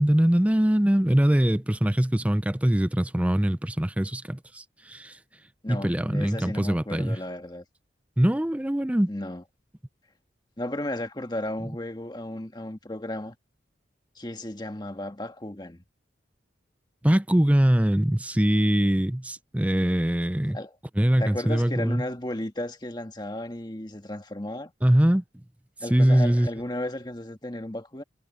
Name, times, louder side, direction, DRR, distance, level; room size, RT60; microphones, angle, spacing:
voice 1, 0.0-5.2 5.7-7.2 8.2-9.1 17.0-20.6 21.0-22.0 24.8-25.2 25.9-26.5, right 1 dB, 10° right, 0.5 m, -22 dB
voice 2, 5.6-7.6 9.1-9.4 10.6-13.4 14.2-15.8 20.5-20.7 21.1-24.7 25.8-28.0, left 1 dB, 25° left, 1.6 m, -34 dB
head